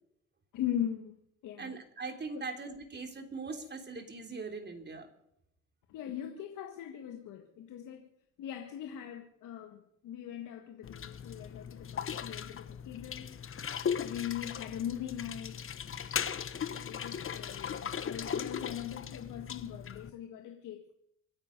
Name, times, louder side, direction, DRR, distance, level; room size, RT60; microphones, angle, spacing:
voice 1, 0.5-1.2 1.4-1.8 2.3-2.5 5.9-8.1 8.4-13.4 14.0-15.8 16.7-20.9, left 10 dB, 90° left, 4 dB, 1.8 m, -40 dB
voice 2, 1.6-5.1, right 4 dB, 35° right, 5 dB, 3.5 m, -41 dB
sound 1, 10.8-20.1, left 7 dB, 45° left, 1.2 m, -38 dB
26.0 x 9.9 x 5.4 m, 0.74 s
cardioid pair, 90°, 30 cm